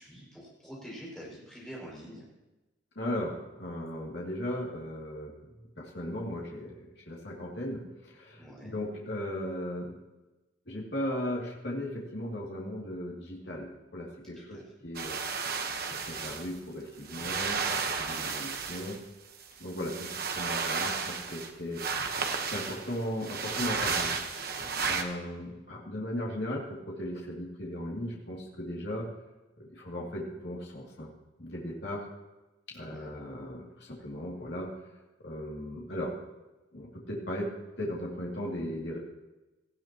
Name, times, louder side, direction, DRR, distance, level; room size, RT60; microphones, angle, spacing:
voice 1, 0.0-2.2 8.4-8.7 14.4-14.6 24.6-24.9 32.8-33.2, equal, 5° left, -6 dB, 6.0 m, -46 dB
voice 2, 3.0-5.3 5.8-7.8 8.1-10.0 10.7-15.2 16.0-19.0 19.6-22.2 22.5-24.1 24.9-29.1 29.7-31.1 31.4-32.1 32.7-34.7 35.2-36.1 36.7-37.5 37.8-39.0, left 1 dB, 60° left, -4 dB, 2.7 m, -37 dB
sound 1, 15.0-16.5 17.1-19.0 19.4-21.5 21.8-25.0, right 5 dB, 50° right, 1.2 m, -33 dB
18.5 x 14.5 x 3.0 m, 1.1 s
head